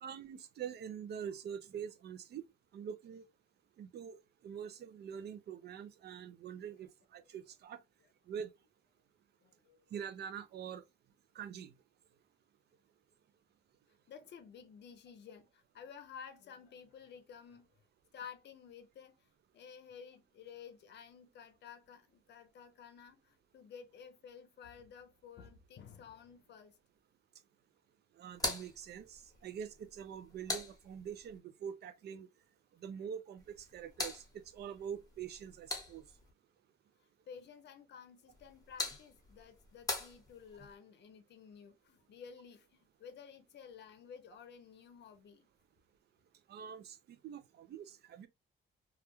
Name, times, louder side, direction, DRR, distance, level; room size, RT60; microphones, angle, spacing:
voice 1, 0.0-2.5 2.7-3.2 3.8-4.2 4.4-7.8 8.3-8.5 9.9-10.8 11.4-11.7 28.2-32.3 32.8-34.2 34.5-36.0 46.5-48.3, right 8 dB, 55° right, 0.4 m, -45 dB
voice 2, 9.4-9.9 14.1-17.7 18.1-26.8 37.3-45.5, left 7 dB, 60° left, 0.6 m, -53 dB
sound 1, 28.3-31.4 33.4-36.3 38.3-40.8, left 2 dB, 20° left, 0.9 m, -43 dB
2.3 x 2.1 x 2.9 m
cardioid pair, 90°, 20 cm